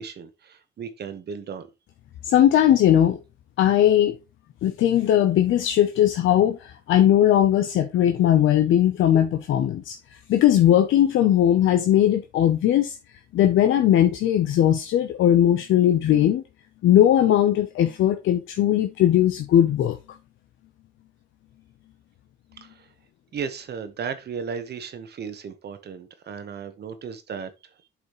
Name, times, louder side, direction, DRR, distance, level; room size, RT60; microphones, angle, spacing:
voice 1, 0.0-1.7 22.6-22.9 23.3-27.9, right 6 dB, 55° right, 1.2 m, -35 dB
voice 2, 2.2-3.2 3.6-4.2 4.6-12.9 13.3-16.4 16.8-20.0, left 11 dB, 80° left, 0.8 m, -19 dB
8.3 x 4.9 x 3.1 m
cardioid pair, 90°, 20 cm